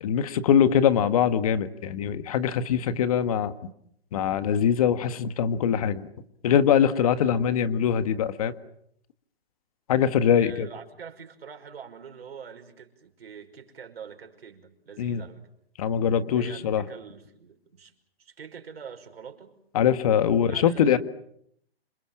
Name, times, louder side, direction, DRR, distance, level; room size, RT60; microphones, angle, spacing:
voice 1, 0.0-3.5 4.1-6.1 6.4-8.5 9.9-10.7 15.0-15.2 15.8-16.8 19.7-21.0, left 8 dB, 35° left, 12 dB, 1.7 m, -22 dB
voice 2, 6.9-7.4 10.3-15.5 16.3-17.9 18.2-19.6 20.4-21.0, right 7 dB, 65° right, 5 dB, 5.7 m, -45 dB
28.0 x 27.5 x 7.4 m, 0.71 s
hypercardioid pair, 160°, 32 cm